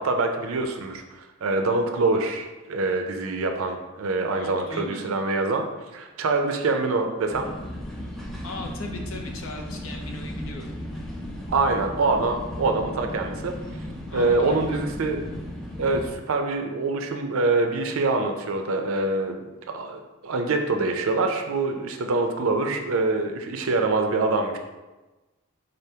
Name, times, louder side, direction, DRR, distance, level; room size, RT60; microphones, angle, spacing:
voice 1, 0.0-7.5 11.5-13.5 14.1-15.2 15.8-19.5 19.7-24.6, right 3 dB, 70° right, 5 dB, 0.4 m, -25 dB
voice 2, 4.3-5.1 8.4-10.7 14.1-14.8, left 2 dB, 70° left, 2 dB, 0.6 m, -37 dB
sound 1, 7.3-16.1, equal, ahead, 0.3 m, -35 dB
3.9 x 3.3 x 2.8 m, 1.1 s
head